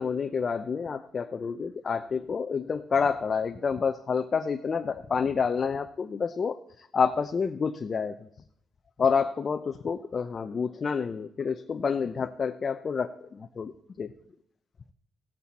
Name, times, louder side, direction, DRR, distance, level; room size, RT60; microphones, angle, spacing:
voice 1, 0.0-8.3 9.0-13.7 14.0-14.1, left 5 dB, 40° left, 7 dB, 0.6 m, -28 dB
16.0 x 8.3 x 4.2 m, 0.74 s
cardioid pair, 90°, 0 cm